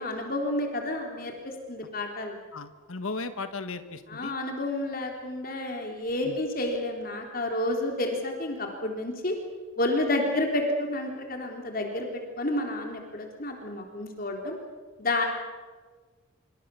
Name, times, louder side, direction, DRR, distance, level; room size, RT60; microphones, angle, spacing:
voice 1, 0.0-1.3 1.7-2.4 4.1-9.4 9.8-14.6 15.0-15.3, left 1 dB, 45° left, 2 dB, 3.5 m, -30 dB
voice 2, 2.5-4.3 6.2-6.4, left 3 dB, 80° left, 10 dB, 1.5 m, -36 dB
27.0 x 25.0 x 7.0 m, 1.4 s
head